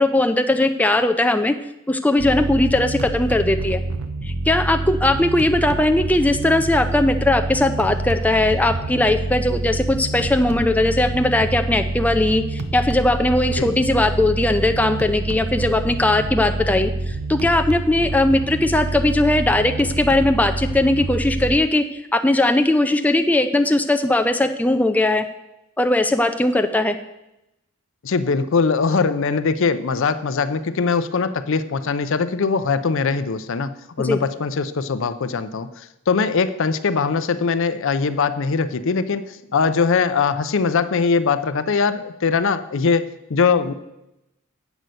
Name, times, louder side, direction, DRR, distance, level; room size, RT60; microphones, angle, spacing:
voice 1, 0.0-1.5 1.9-3.8 4.2-21.8 22.1-25.2 25.8-27.0 34.0-34.2, left 2 dB, 5° left, 6 dB, 0.4 m, -19 dB
sound 1, 2.2-21.6, right 2 dB, 80° right, 0.7 m, -27 dB
voice 2, 28.0-43.7, left 5 dB, 65° left, 12 dB, 0.5 m, -21 dB
8.0 x 5.3 x 7.7 m, 0.88 s
head